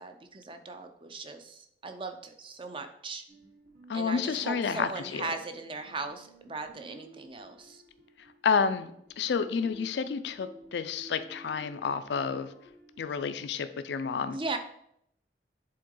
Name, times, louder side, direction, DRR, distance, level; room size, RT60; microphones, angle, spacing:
voice 1, 0.0-3.2 3.9-7.8 14.3-14.6, right 3 dB, 30° right, 7 dB, 0.5 m, -38 dB
sound 1, 3.3-13.1, right 1 dB, 70° right, 2.2 m, -54 dB
voice 2, 3.9-5.3 8.4-8.9 9.2-12.5 13.0-14.4, left 5 dB, 75° left, 11 dB, 0.4 m, -30 dB
7.7 x 3.7 x 3.8 m, 0.73 s
head